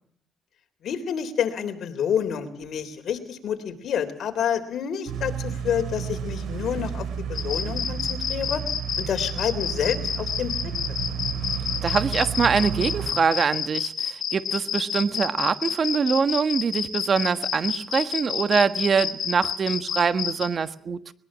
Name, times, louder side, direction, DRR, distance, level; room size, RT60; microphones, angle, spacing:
voice 1, 0.8-8.6 9.0-11.0, left 8 dB, 70° left, 7 dB, 3.5 m, -28 dB
sound 1, 5.1-13.1, right 7 dB, 85° right, 3.9 m, -32 dB
sound 2, 7.3-20.5, left 8 dB, 50° left, 5.2 m, -28 dB
voice 2, 11.8-21.1, right 5 dB, 45° right, 12 dB, 1.4 m, -24 dB
21.0 x 21.0 x 7.4 m, 0.64 s
cardioid pair, 90°, 0 cm